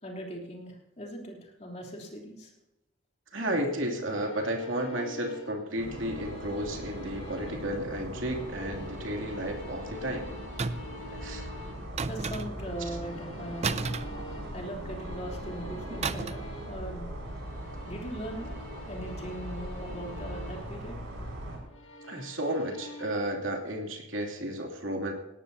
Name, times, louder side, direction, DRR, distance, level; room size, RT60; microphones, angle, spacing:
voice 1, 0.0-2.5 12.0-13.9 14.5-17.1 17.9-20.9, right 1 dB, 30° left, 0 dB, 3.2 m, -40 dB
voice 2, 3.3-10.3 11.1-11.5 15.9-16.0 22.1-25.1, right 1 dB, 70° right, 2 dB, 2.8 m, -33 dB
sound 1, 4.2-7.8 8.1-12.0 12.5-16.9 17.2-20.8 21.6-23.2, left 2 dB, 65° left, 2.4 m, -48 dB
sound 2, 5.8-21.6, right 1 dB, 90° right, 6.4 m, -40 dB
sound 3, 10.6-11.0 12.0-12.7 13.6-14.8 16.0-16.5 16.8-17.0, right 4 dB, 30° right, 0.5 m, -33 dB
19.5 x 17.5 x 2.8 m, 1.0 s
head